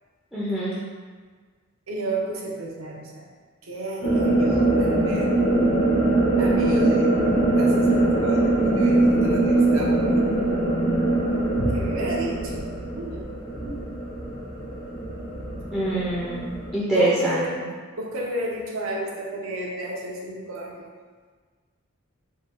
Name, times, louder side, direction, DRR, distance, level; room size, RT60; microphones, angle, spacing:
voice 1, 0.3-0.7 15.7-16.4 16.7-17.4, right 1 dB, ahead, -9 dB, 0.5 m, -24 dB
voice 2, 1.9-3.3 3.6-5.4 6.4-7.2 7.6-10.5 11.7-13.4 16.9-17.6 18.0-20.9, right 1 dB, 75° right, -2 dB, 0.7 m, -32 dB
sound 1, 4.0-16.7, right 2 dB, 60° left, 1.2 m, -22 dB
3.6 x 2.3 x 4.2 m, 1.5 s
head